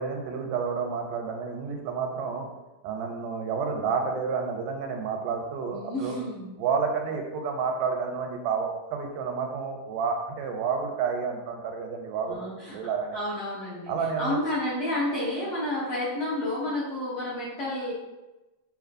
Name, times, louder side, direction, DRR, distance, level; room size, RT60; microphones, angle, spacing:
voice 1, 0.0-2.5 2.8-6.2 6.6-13.2 13.9-14.4, right 5 dB, 85° right, 3 dB, 2.1 m, -30 dB
voice 2, 5.7-6.6 12.3-12.8 13.1-17.9, left 1 dB, 65° left, -8 dB, 1.3 m, -30 dB
7.2 x 2.8 x 2.5 m, 1.1 s
omnidirectional pair, 3.7 m